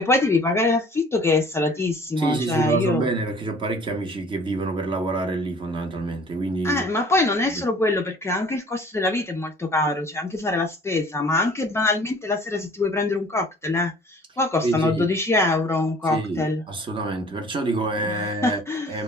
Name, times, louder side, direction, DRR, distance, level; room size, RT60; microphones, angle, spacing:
voice 1, 0.0-3.1 6.6-16.6 18.0-18.9, left 2 dB, 15° left, 0.4 m, -24 dB
voice 2, 2.2-6.8 7.5-7.6 14.6-15.1 16.1-18.6 18.9-19.0, right 3 dB, 30° right, 0.7 m, -27 dB
2.1 x 2.1 x 3.1 m
cardioid pair, 110°, 17 cm